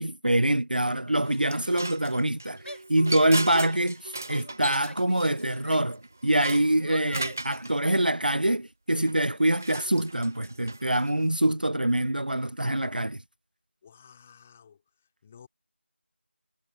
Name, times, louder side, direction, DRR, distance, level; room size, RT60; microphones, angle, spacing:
voice 1, 0.0-13.2, right 1 dB, 45° right, 0.6 m, -25 dB
sound 1, 1.2-7.7 9.0-11.4, right 2 dB, 15° right, 0.9 m, -38 dB
Female speech woman speaking / Yell, 2.6-3.9 4.4-6.0 6.3-7.4, left 1 dB, 65° left, 6.2 m, -46 dB
voice 2, 13.8-15.5, left 7 dB, 5° left, 3.2 m, -54 dB
figure-of-eight pair, 175°, 7 cm